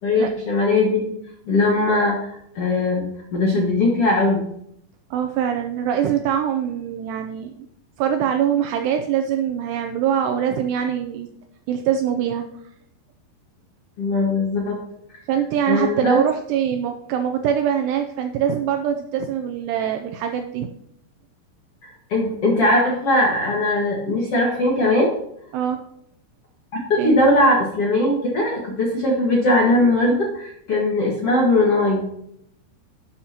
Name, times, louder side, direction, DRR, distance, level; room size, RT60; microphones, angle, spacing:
voice 1, 0.0-1.2 1.5-4.4 14.0-14.8 15.7-16.2 21.8-25.1 26.7-32.0, left 2 dB, 60° left, -2 dB, 1.6 m, -20 dB
voice 2, 5.1-7.5 8.0-11.3 11.7-12.5 15.3-20.7 25.5-25.8 27.0-27.2, right 9 dB, 80° right, 5 dB, 2.6 m, -23 dB
12.5 x 8.7 x 2.9 m, 0.73 s
omnidirectional pair, 5.1 m